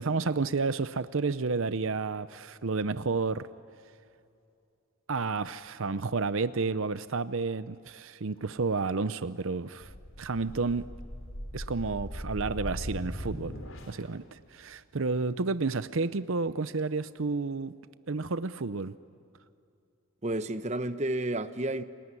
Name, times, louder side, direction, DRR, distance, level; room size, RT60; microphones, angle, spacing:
voice 1, 0.0-3.5 5.1-9.9 10.2-10.9 11.5-13.5 13.9-17.7 18.1-19.0, right 4 dB, 70° right, 0.7 m, -31 dB
sound 1, 9.8-14.1, equal, 70° left, 3.6 m, -39 dB
voice 2, 20.2-21.8, right 1 dB, 30° right, 0.9 m, -31 dB
30.0 x 20.0 x 9.7 m
head